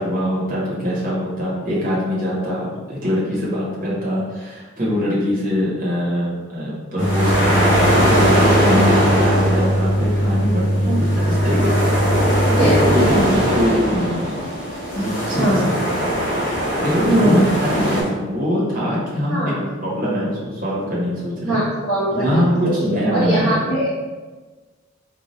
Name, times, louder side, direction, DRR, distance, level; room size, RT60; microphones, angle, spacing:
voice 1, 0.0-11.8 12.5-14.3 15.0-15.8 16.5-21.6 22.1-23.6, left 1 dB, 40° right, -6 dB, 0.9 m, -23 dB
sound 1, 7.0-18.0, equal, 75° left, 1.1 m, -20 dB
sound 2, 7.0-13.1, equal, 70° right, 0.6 m, -20 dB
voice 2, 15.3-15.7 17.0-17.5 19.3-19.7 21.4-23.9, right 1 dB, 30° left, -15 dB, 1.1 m, -21 dB
3.9 x 2.3 x 3.1 m, 1.3 s
head